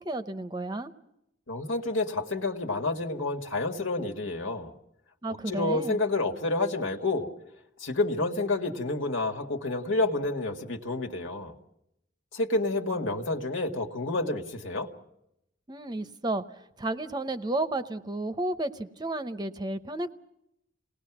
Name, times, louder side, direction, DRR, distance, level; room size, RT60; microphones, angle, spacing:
voice 1, 0.0-0.9 5.2-6.0 15.7-16.4 16.8-20.1, right 2 dB, 20° right, 10 dB, 0.7 m, -32 dB
voice 2, 1.5-4.7 5.5-7.3 7.8-11.5 12.3-14.9, left 2 dB, 80° left, 3 dB, 1.9 m, -29 dB
28.5 x 19.0 x 6.1 m, 0.82 s
head